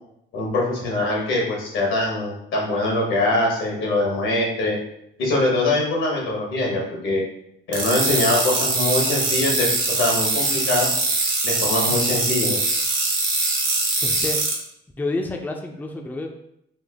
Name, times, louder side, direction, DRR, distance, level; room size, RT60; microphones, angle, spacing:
voice 1, 0.3-4.8 5.2-7.2 7.7-10.9 11.4-12.8, left 2 dB, 85° left, -2 dB, 1.2 m, -23 dB
sound 1, 7.7-14.5, right 3 dB, 80° right, 0.9 m, -22 dB
voice 2, 14.0-14.4 15.0-16.3, left 2 dB, 10° left, 2 dB, 0.4 m, -28 dB
3.4 x 2.0 x 3.4 m, 0.75 s
cardioid pair, 90°, 20 cm